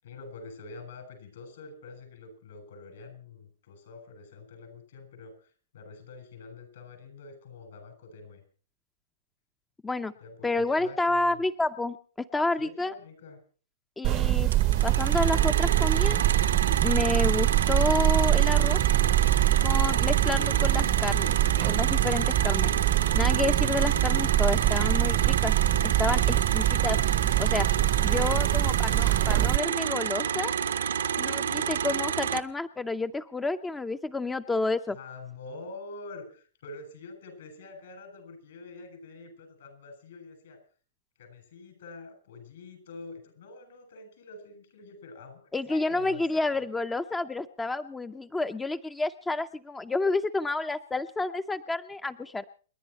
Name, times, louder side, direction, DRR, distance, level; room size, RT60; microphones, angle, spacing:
voice 1, 0.0-8.4 10.2-11.4 12.6-13.4 27.8-28.3 31.4-31.8 34.9-40.6 41.2-46.3, left 3 dB, 70° left, 8 dB, 7.3 m, -46 dB
voice 2, 10.4-12.0 12.3-12.9 14.0-14.5 14.8-16.2 16.8-18.8 19.6-21.4 21.6-22.7 23.1-25.5 25.8-27.7 28.0-30.5 31.2-35.0 45.5-52.4, left 2 dB, 10° left, 10 dB, 0.6 m, -30 dB
sound 1, 14.0-29.6, right 15 dB, 40° right, 0.8 m, -24 dB
sound 2, 14.5-32.4, right 8 dB, 80° right, 1.1 m, -29 dB
29.5 x 10.5 x 4.2 m, 0.41 s
hypercardioid pair, 125°, 0 cm